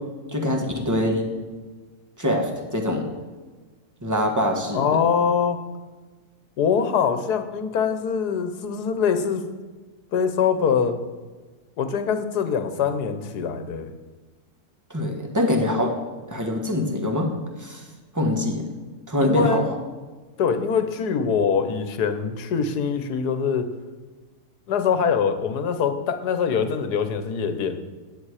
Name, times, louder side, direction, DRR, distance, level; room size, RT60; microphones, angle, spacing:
voice 1, 0.3-1.3 2.2-3.0 4.0-5.0 14.9-15.9 16.3-17.3 17.6-17.8 18.1-18.7 19.1-19.8, left 1 dB, 10° right, 2 dB, 1.5 m, -24 dB
voice 2, 4.7-5.6 6.6-9.4 10.1-11.0 11.8-13.9 19.2-19.7 20.4-23.7 24.7-27.8, left 6 dB, 80° left, 9 dB, 1.5 m, -23 dB
10.0 x 8.8 x 4.9 m, 1.3 s
omnidirectional pair, 1.7 m